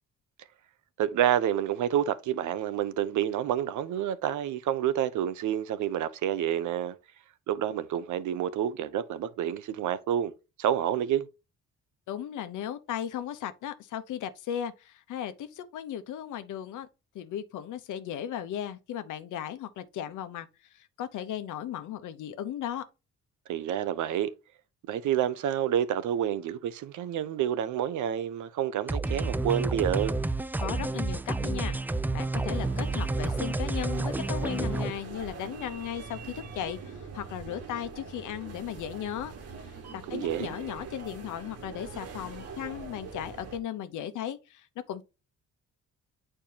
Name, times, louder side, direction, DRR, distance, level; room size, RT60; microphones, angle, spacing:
voice 1, 1.0-6.9 7.5-10.3 10.6-11.3 23.5-24.3 24.9-30.2 40.1-40.6, right 10 dB, 75° right, 0.7 m, -28 dB
voice 2, 12.1-16.9 17.1-20.5 20.7-22.8 30.6-31.8 32.1-39.3 39.9-45.0, left 10 dB, 80° left, 0.9 m, -36 dB
sound 1, 28.9-34.9, right 2 dB, 5° right, 0.4 m, -30 dB
sound 2, 32.5-43.6, right 5 dB, 55° right, 1.6 m, -43 dB
8.6 x 4.5 x 2.8 m
cardioid pair, 90°, 30 cm